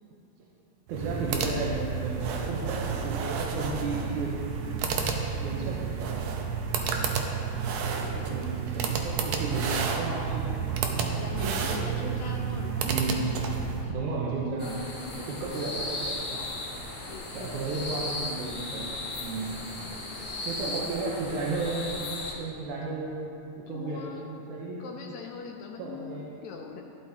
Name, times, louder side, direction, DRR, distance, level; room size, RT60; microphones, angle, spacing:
voice 1, 0.9-4.8 5.4-6.2 8.0-12.2 12.8-13.2 13.8-14.8 15.1-16.5 17.3-19.6 20.4-21.9 22.4-23.1 23.6-24.2 24.5-24.8 25.8-26.4, right 3 dB, 70° right, -4 dB, 2.2 m, -34 dB
sound 1, 0.9-13.9, right 6 dB, 85° right, 1.5 m, -30 dB
voice 2, 7.7-8.2 11.1-14.0 15.5-15.8 17.1-17.8 19.8-20.4 20.7-21.2 23.7-24.4 24.8-26.8, left 5 dB, 85° left, 1 dB, 1.6 m, -42 dB
sound 2, 14.6-22.3, left 2 dB, 55° left, 0.9 m, -36 dB
13.0 x 11.5 x 3.0 m, 2.7 s
omnidirectional pair, 4.1 m